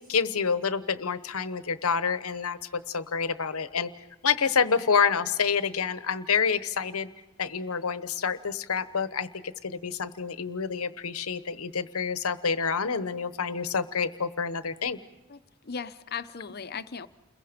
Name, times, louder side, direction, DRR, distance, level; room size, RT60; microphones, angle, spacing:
voice 1, 0.0-3.9 4.2-7.1 7.4-15.0, left 6 dB, 80° left, 1.0 m, -28 dB
voice 2, 15.3-17.1, left 6 dB, 45° left, 0.8 m, -37 dB
29.5 x 22.0 x 5.1 m
head